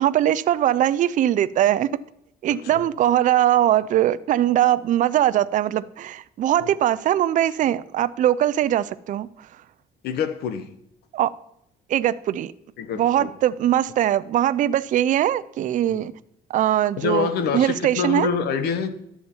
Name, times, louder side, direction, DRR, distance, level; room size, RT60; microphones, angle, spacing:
voice 1, 0.0-1.9 2.4-9.3 11.1-11.3 11.9-12.5 13.0-16.1 16.5-17.3 17.5-18.3, right 12 dB, 50° right, 0.4 m, -21 dB
voice 2, 10.0-10.7 12.8-13.3 15.8-16.0 17.0-18.9, left 6 dB, 70° left, 1.0 m, -26 dB
11.5 x 7.2 x 4.3 m
cardioid pair, 110°, 17 cm